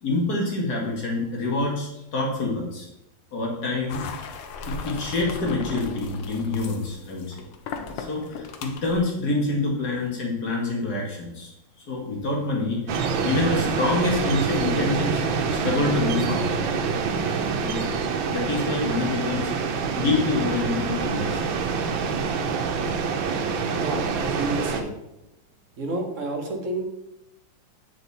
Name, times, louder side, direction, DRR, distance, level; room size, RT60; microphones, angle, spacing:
voice 1, 0.0-2.9 3.3-4.0 4.7-7.4 7.9-11.5 11.9-15.2 15.5-16.6 17.6-17.8 18.3-21.5, left 2 dB, 55° left, -1 dB, 2.1 m, -26 dB
sound 1, 3.9-9.0, left 5 dB, 75° left, 1.4 m, -37 dB
sound 2, 12.9-24.8, right 5 dB, 85° right, 1.5 m, -26 dB
voice 2, 23.8-24.9 25.8-26.8, right 2 dB, 45° right, 2 dB, 1.3 m, -30 dB
7.7 x 5.0 x 4.1 m, 0.87 s
omnidirectional pair, 2.1 m